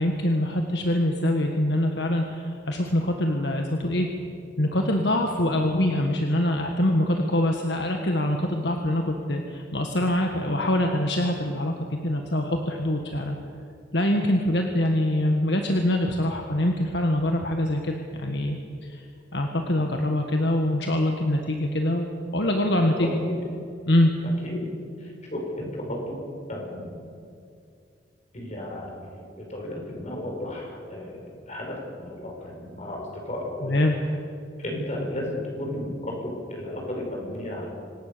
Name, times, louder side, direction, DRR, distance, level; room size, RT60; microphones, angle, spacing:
voice 1, 0.0-4.1 4.6-13.3 13.9-18.6 18.9-19.0 19.3-23.1 23.9-24.1 33.7-33.9, left 1 dB, 65° left, 3 dB, 1.7 m, -24 dB
voice 2, 22.5-23.3 24.4-24.7 25.0-26.2 26.5-27.0 28.3-31.2 31.5-33.8 34.6-37.7, left 1 dB, 40° left, 0 dB, 6.0 m, -34 dB
26.0 x 18.5 x 6.9 m, 2.5 s
head